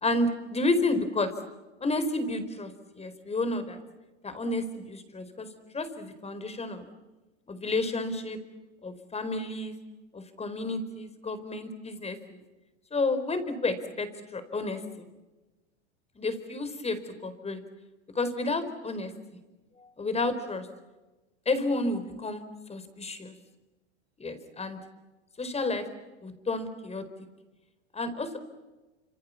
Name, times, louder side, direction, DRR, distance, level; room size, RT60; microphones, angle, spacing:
voice 1, 0.0-1.3 1.8-3.8 4.2-5.5 5.7-6.9 7.5-8.4 8.8-9.8 10.1-12.4 12.9-15.1 16.2-17.6 18.1-19.1 19.8-20.7 21.5-22.4 22.7-23.3 24.2-24.8 25.4-25.9 26.2-27.0 27.9-28.4, left 2 dB, 15° left, 11 dB, 4.5 m, -31 dB
29.5 x 27.5 x 7.2 m, 1.1 s
hypercardioid pair, 100°, 36 cm